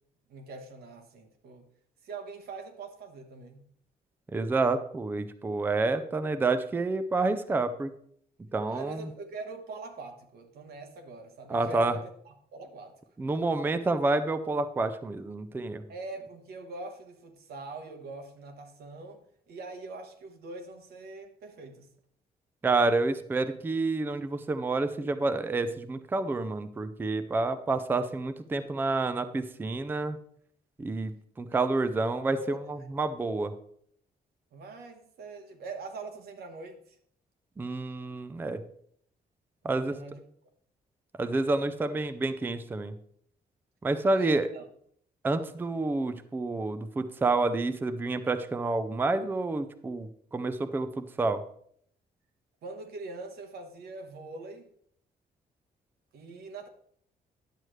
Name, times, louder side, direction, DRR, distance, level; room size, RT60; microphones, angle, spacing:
voice 1, 0.3-1.7 2.0-3.6 8.7-13.0 15.9-19.2 19.5-21.9 31.5-31.7 32.3-32.6 34.5-37.0 39.7-40.2 44.1-44.6 52.6-54.7 56.1-56.7, right 3 dB, 85° right, 6 dB, 1.3 m, -43 dB
voice 2, 4.3-7.9 8.5-9.1 11.5-12.0 13.2-15.8 22.6-30.2 30.8-33.5 37.6-38.6 39.6-40.0 41.2-42.9 43.8-44.5 45.2-51.4, right 3 dB, 15° right, 10 dB, 0.4 m, -29 dB
10.5 x 7.7 x 3.2 m, 0.65 s
cardioid pair, 170°, 16 cm